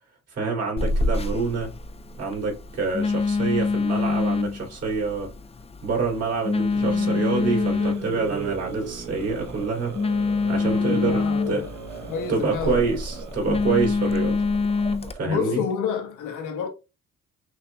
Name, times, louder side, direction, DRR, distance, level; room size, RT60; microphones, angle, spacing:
voice 1, 0.3-1.7 2.2-5.3 5.8-10.0 10.5-11.7 12.3-14.4 15.2-15.6, right 4 dB, 55° right, 2.6 m, -27 dB
Telephone, 0.8-15.1, left 4 dB, 20° left, 0.4 m, -26 dB
sound 1, 6.6-15.4, right 6 dB, 75° right, 1.0 m, -38 dB
voice 2, 10.6-11.7 12.0-12.9 15.2-16.7, left 6 dB, 90° left, 1.3 m, -29 dB
6.1 x 2.7 x 2.2 m
cardioid pair, 90°, 30 cm